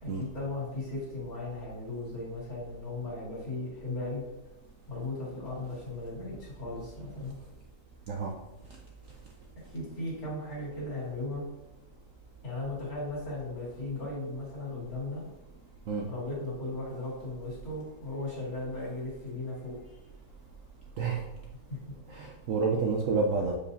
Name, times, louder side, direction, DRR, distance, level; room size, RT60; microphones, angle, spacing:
voice 1, 0.0-4.2 4.9-7.4 9.7-11.4 12.4-15.2 16.1-19.7 21.7-21.8, left 2 dB, 55° left, -6 dB, 2.8 m, -37 dB
voice 2, 22.1-23.6, right 4 dB, 65° right, 1 dB, 0.8 m, -29 dB
7.1 x 4.9 x 2.7 m, 0.95 s
omnidirectional pair, 1.9 m